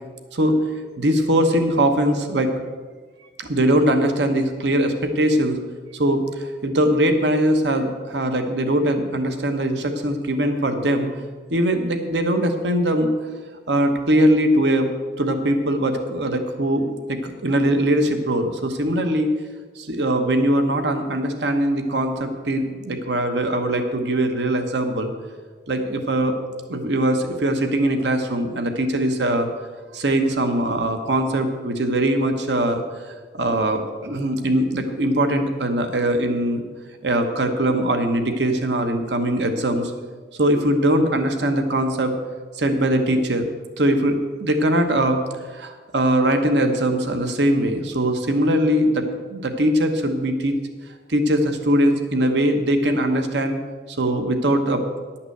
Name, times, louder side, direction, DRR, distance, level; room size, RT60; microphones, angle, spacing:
voice 1, 0.3-0.7 1.0-2.5 3.4-5.6 5.9-11.1 11.5-13.1 13.7-14.9 15.2-19.3 19.8-25.1 25.7-26.3 26.7-29.5 29.9-32.8 33.3-36.6 37.0-39.9 40.4-42.1 42.5-43.5 43.8-45.2 45.5-50.5 51.1-53.6 53.9-54.8, right 1 dB, 75° right, 6 dB, 1.0 m, -21 dB
11.0 x 5.9 x 7.8 m, 1.4 s
head